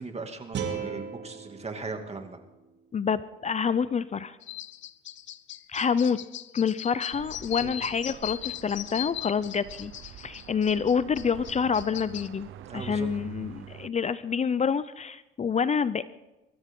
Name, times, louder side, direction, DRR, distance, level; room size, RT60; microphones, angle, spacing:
voice 1, 0.0-2.4 7.6-7.8 12.7-13.1, right 4 dB, 30° right, 5 dB, 2.4 m, -38 dB
sound 1, 0.5-3.6, right 7 dB, 65° right, 2.5 m, -38 dB
voice 2, 2.9-4.4 5.7-6.2 6.5-9.9 10.2-12.5 12.7-16.0, left 6 dB, 35° left, 15 dB, 0.6 m, -27 dB
sound 2, 4.4-12.3, left 13 dB, 70° left, 0.7 m, -39 dB
sound 3, 7.1-13.9, right 12 dB, 80° right, 0.7 m, -45 dB
23.5 x 14.0 x 3.8 m, 1.0 s
cardioid pair, 90°, 20 cm